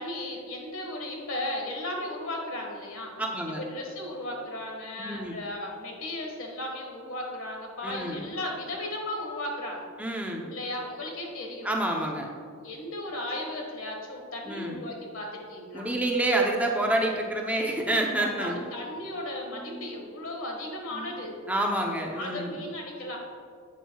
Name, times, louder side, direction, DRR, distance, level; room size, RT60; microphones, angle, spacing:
voice 1, 0.0-3.1 3.7-9.9 10.5-11.7 12.6-15.9 18.4-21.4 22.2-23.2, left 1 dB, 65° left, 0 dB, 1.6 m, -35 dB
voice 2, 3.2-3.6 5.0-5.3 7.8-8.2 10.0-10.5 11.6-12.3 14.4-14.8 15.7-18.7 19.5-20.0 20.9-21.1 21.5-22.6, right 1 dB, 5° right, 0 dB, 0.7 m, -28 dB
10.5 x 8.1 x 2.3 m, 2.2 s
head